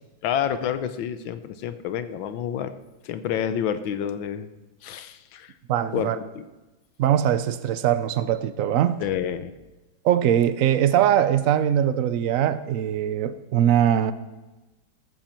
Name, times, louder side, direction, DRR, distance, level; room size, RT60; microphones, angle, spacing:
voice 1, 0.2-2.7 3.0-4.5 4.8-5.5 5.9-6.4 9.0-9.5, left 9 dB, 75° left, 11 dB, 1.5 m, -28 dB
voice 2, 5.7-6.2 7.0-9.0 10.0-14.1, right 10 dB, 85° right, 13 dB, 0.7 m, -21 dB
14.0 x 13.5 x 4.4 m, 1.1 s
omnidirectional pair, 2.2 m